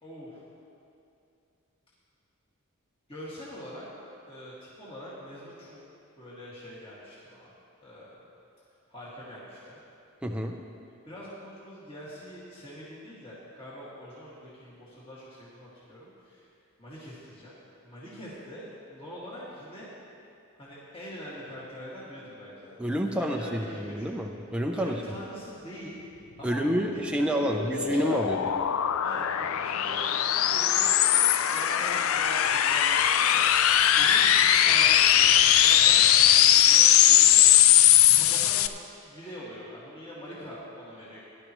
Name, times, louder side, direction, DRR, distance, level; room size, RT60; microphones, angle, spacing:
voice 1, 0.0-0.4 3.1-5.8 6.2-7.5 7.8-8.2 8.9-9.8 11.1-16.5 16.8-18.6 18.9-19.9 20.6-22.8 23.1-24.1 24.7-26.0 26.4-28.6 29.0-30.1 30.4-31.0 31.3-37.4 38.1-41.2, equal, 25° left, -8 dB, 2.0 m, -43 dB
voice 2, 10.2-10.5 22.8-25.0 26.4-28.5, equal, 5° right, 1 dB, 0.5 m, -28 dB
sound 1, 26.9-38.7, left 10 dB, 70° left, 0.4 m, -20 dB
17.0 x 11.0 x 3.1 m, 2.6 s
head